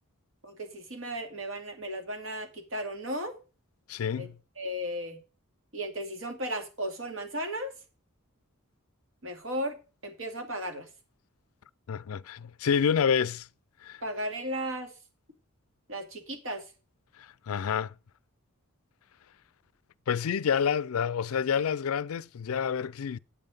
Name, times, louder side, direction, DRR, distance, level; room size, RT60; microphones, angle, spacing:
voice 1, 0.4-3.4 4.2-4.3 4.6-5.2 5.7-7.7 9.2-9.7 10.0-10.9 14.0-14.9 15.9-16.6, equal, 65° right, 2.4 m, -35 dB
voice 2, 3.9-4.3 11.9-13.5 13.8-14.0 17.2-17.9 20.1-23.2, left 7 dB, 80° left, 0.4 m, -28 dB
8.6 x 7.6 x 5.1 m
head